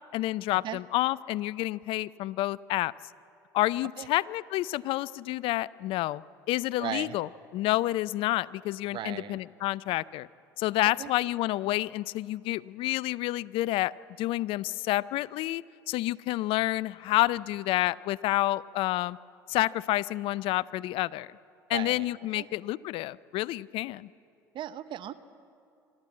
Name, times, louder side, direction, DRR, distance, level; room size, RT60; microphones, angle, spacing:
voice 1, 0.1-2.9 3.5-7.3 7.5-10.3 10.6-13.9 14.2-19.2 19.5-21.3 21.7-24.1, left 17 dB, 60° left, 21 dB, 0.5 m, -29 dB
voice 2, 6.8-7.2 8.9-9.4 11.0-11.1 21.7-22.1 22.4-22.5 24.5-25.1, right 11 dB, 50° right, 14 dB, 0.8 m, -37 dB
25.0 x 13.0 x 8.6 m, 2.5 s
hypercardioid pair, 70°, 10 cm